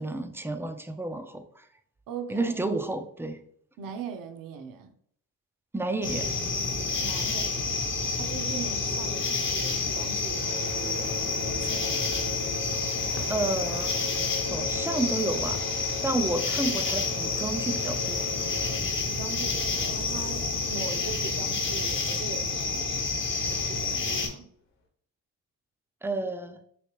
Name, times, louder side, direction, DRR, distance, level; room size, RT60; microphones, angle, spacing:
voice 1, 0.0-1.7 2.3-3.4 5.7-6.3 13.3-14.0 14.5-15.7 16.0-18.3 26.0-26.6, right 2 dB, 5° right, 0.3 m, -31 dB
voice 2, 2.1-2.5 3.8-4.9 7.0-7.8 8.2-12.2 19.0-20.4 20.7-23.1 23.4-24.5, right 5 dB, 60° right, 0.6 m, -40 dB
sound 1, 6.0-24.3, left 4 dB, 30° left, 0.8 m, -29 dB
sound 2, 10.2-20.5 21.4-21.5 22.2-22.3 22.9-23.0, left 4 dB, 50° left, 1.1 m, -40 dB
3.2 x 2.8 x 2.9 m
supercardioid pair, 65°, 38 cm